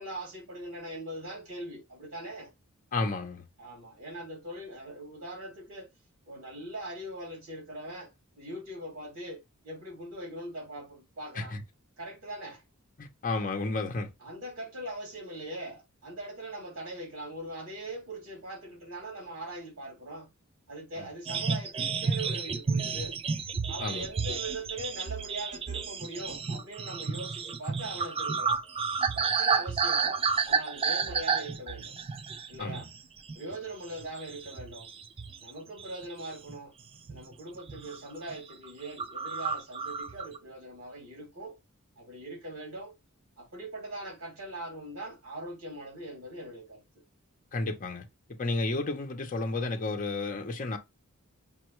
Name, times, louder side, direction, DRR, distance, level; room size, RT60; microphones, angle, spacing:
voice 1, 0.0-2.5 3.6-5.9 6.3-8.1 8.4-11.5 12.0-12.6 14.2-20.3 20.7-23.2 23.7-28.6 29.1-31.9 32.5-32.9 33.3-34.9 35.4-36.7 37.1-41.6 42.0-42.9 43.4-47.0, right 1 dB, 85° right, 2.6 m, -41 dB
voice 2, 2.9-3.4 11.3-11.6 13.0-14.1 21.0-21.1 23.8-24.1 32.6-32.8 47.5-48.1 48.4-50.8, left 3 dB, 40° left, 0.7 m, -32 dB
sound 1, 21.3-33.0 33.3-33.6 34.0-35.5 35.8-36.6 37.1-37.3 37.6-38.0 38.3-38.4 38.6-38.7 39.0-40.4, right 5 dB, 25° right, 0.3 m, -31 dB
5.3 x 2.2 x 3.0 m
head